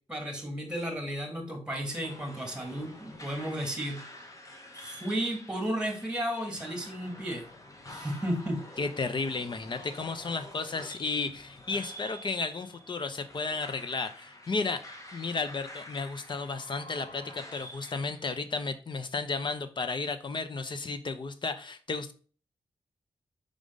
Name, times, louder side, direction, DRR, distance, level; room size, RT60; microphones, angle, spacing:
voice 1, 0.1-4.0 4.7-7.5 7.9-8.6, equal, 10° right, 3 dB, 2.5 m, -33 dB
sound 1, 1.8-18.6, left 1 dB, 30° left, 1.4 m, -48 dB
voice 2, 8.8-14.8 15.1-22.1, left 4 dB, 45° left, 10 dB, 0.8 m, -33 dB
5.2 x 4.9 x 3.9 m, 0.39 s
wide cardioid pair, 105°, 11 cm